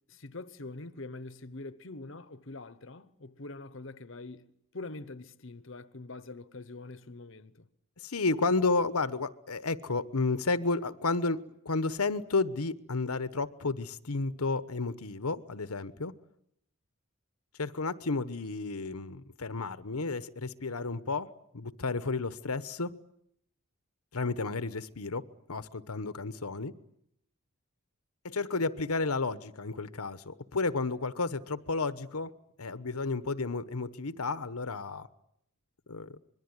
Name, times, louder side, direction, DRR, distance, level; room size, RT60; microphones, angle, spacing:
voice 1, 0.1-7.7, left 2 dB, 60° left, 1.0 m, -44 dB
voice 2, 8.0-16.1 17.6-21.3 21.5-22.9 24.1-26.7 28.2-32.3 32.6-35.1 35.9-36.2, left 3 dB, 85° left, 1.1 m, -32 dB
25.5 x 22.0 x 9.7 m
head